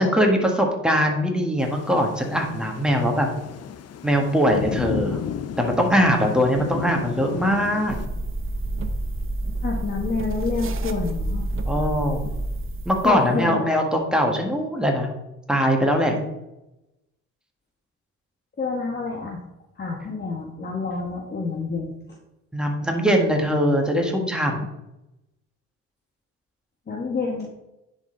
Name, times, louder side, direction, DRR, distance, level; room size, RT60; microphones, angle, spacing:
voice 1, 0.0-3.3 4.0-5.2 5.6-8.0 11.7-12.3 12.8-15.1 15.5-16.2 22.5-24.7, equal, 5° right, 1 dB, 1.6 m, -21 dB
Thunder / Rain, 1.6-8.1, left 8 dB, 55° left, 0.6 m, -33 dB
sound 1, 7.9-13.1, right 1 dB, 45° right, 0.8 m, -28 dB
voice 2, 9.6-11.5 13.0-13.6 18.6-19.4 19.8-21.9 26.9-27.5, left 4 dB, 35° left, -1 dB, 1.2 m, -28 dB
10.0 x 4.1 x 3.8 m, 0.92 s
cardioid pair, 90°, 30 cm